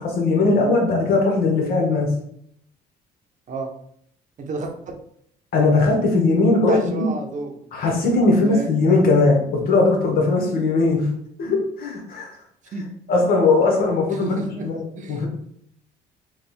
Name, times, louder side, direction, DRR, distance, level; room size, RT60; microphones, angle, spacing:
voice 1, 0.0-2.1 5.5-7.1 7.7-11.1 11.4-12.4 13.1-14.4 14.6-14.8 15.1-15.3, left 3 dB, 60° left, 0 dB, 1.2 m, -19 dB
voice 2, 4.4-4.9 6.7-7.6 8.3-8.7 12.7-12.8 14.1-14.7 15.0-15.2, right 3 dB, 45° right, 3 dB, 0.7 m, -30 dB
3.3 x 2.3 x 4.2 m, 0.69 s
cardioid pair, 110°, 17 cm